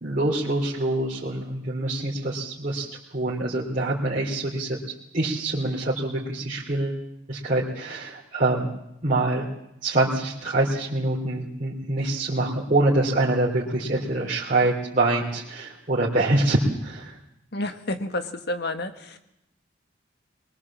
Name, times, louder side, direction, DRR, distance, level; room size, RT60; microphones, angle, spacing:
voice 1, 0.0-2.9 3.1-4.8 5.1-7.0 7.3-8.7 9.0-9.4 9.8-17.1, right 2 dB, 40° right, -5 dB, 3.2 m, -25 dB
voice 2, 17.5-19.2, left 1 dB, 55° left, 8 dB, 1.8 m, -30 dB
23.5 x 21.5 x 7.4 m, 0.84 s
head